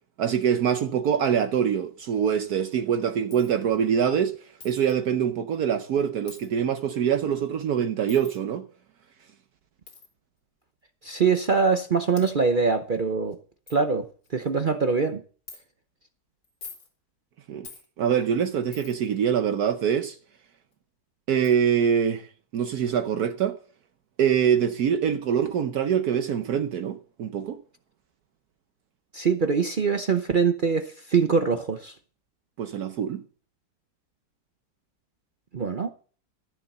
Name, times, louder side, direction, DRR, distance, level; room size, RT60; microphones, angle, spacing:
voice 1, 0.2-4.3 4.6-8.6 17.5-17.7 18.0-20.1 21.3-22.3 22.5-23.6 24.2-27.6 32.6-33.2, right 8 dB, 65° right, 1.3 m, -24 dB
Coin (dropping), 3.3-3.6 4.6-5.0 6.3-6.5 8.1-8.4 9.9-10.1 11.0-11.1 11.8-11.9 12.2-12.3 12.9-13.0 13.3-13.4 13.7-13.8 14.2-14.6 15.5-15.6 16.4-16.9 17.6-17.9 18.7-19.1 20.7-20.8 21.4-21.6, left 5 dB, 80° left, 3.0 m, -45 dB
voice 2, 11.0-13.4 13.7-14.1 14.3-15.2 29.1-31.9 35.5-35.9, right 5 dB, 50° right, 0.6 m, -23 dB
13.5 x 7.4 x 6.5 m
omnidirectional pair, 1.8 m